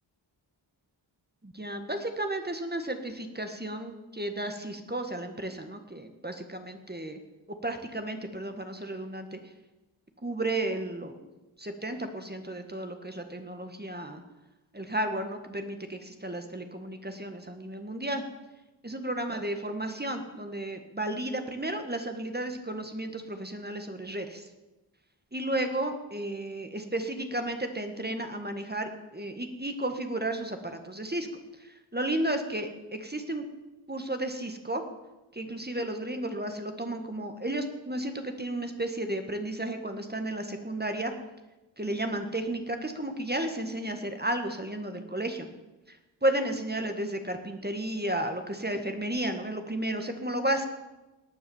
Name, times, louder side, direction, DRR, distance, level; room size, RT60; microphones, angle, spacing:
voice 1, 1.4-7.2 7.6-9.4 10.2-11.2 11.6-14.2 14.7-18.2 18.8-24.5 25.3-31.3 31.6-33.5 33.9-34.8 35.3-41.1 41.8-45.5 45.9-50.7, right 1 dB, 20° right, 6 dB, 1.7 m, -33 dB
18.5 x 9.5 x 7.2 m, 1.1 s
wide cardioid pair, 65°, 48 cm